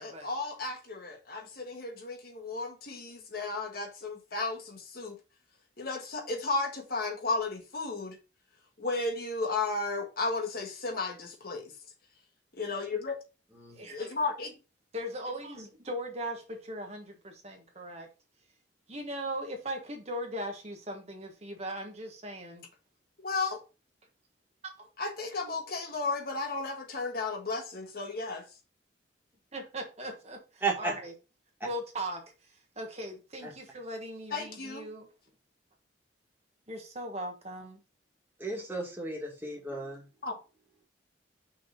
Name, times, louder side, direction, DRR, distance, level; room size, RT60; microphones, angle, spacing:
voice 1, 0.0-5.2 5.8-8.2 8.8-11.7 12.6-13.2 13.9-14.5 23.2-23.6 25.0-28.4 34.3-34.8 40.2-40.3, left 3 dB, 50° left, 1.5 m, -34 dB
voice 2, 13.7-14.1 14.9-18.1 18.9-22.6 24.6-24.9 29.5-31.1 31.6-35.1 36.7-37.8, right 1 dB, 35° right, 1.3 m, -39 dB
voice 3, 30.6-30.9 33.4-33.5 38.4-40.1, right 3 dB, 10° right, 2.0 m, -34 dB
6.0 x 3.6 x 5.2 m
head